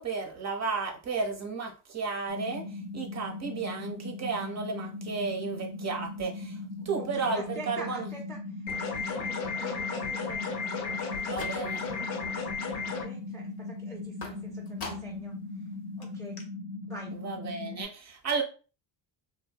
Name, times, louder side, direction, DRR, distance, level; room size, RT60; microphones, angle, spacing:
voice 1, 0.0-2.7 2.9-6.6 6.8-8.1 11.3-11.8 17.1-18.4, right 4 dB, 35° right, 3 dB, 0.7 m, -33 dB
sound 1, 2.3-17.9, left 2 dB, 90° right, 0.6 m, -39 dB
voice 2, 6.8-11.4 11.9-12.1 12.8-15.6 16.0-16.4 16.9-17.2, equal, 5° left, -2 dB, 0.3 m, -46 dB
sound 2, 8.7-13.1, left 5 dB, 90° left, 0.7 m, -34 dB
sound 3, 10.9-12.0 12.4-12.9 14.2-15.3 15.7-15.8 16.0-16.1 16.4-16.5, left 3 dB, 50° left, 0.8 m, -43 dB
2.6 x 2.2 x 2.2 m, 0.36 s
cardioid pair, 90°, 50 cm